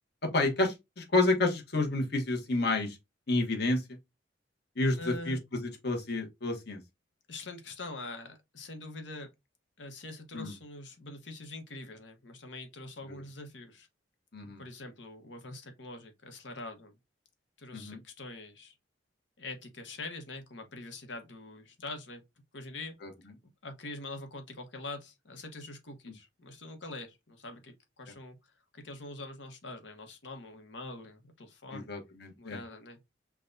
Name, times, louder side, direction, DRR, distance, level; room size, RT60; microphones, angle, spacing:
voice 1, 0.2-3.0 3.3-3.8 4.8-5.4 5.8-6.8 10.3-10.5 13.1-13.2 14.3-14.6 17.7-18.0 23.0-23.1 31.7-32.6, left 2 dB, 60° left, 1.1 m, -29 dB
voice 2, 5.0-5.4 7.3-9.3 9.8-13.9 14.4-16.9 17.6-18.7 19.4-22.2 22.5-23.0 23.6-28.4 28.7-31.9 32.4-33.0, left 2 dB, 85° left, 1.1 m, -44 dB
5.8 x 2.3 x 2.6 m
head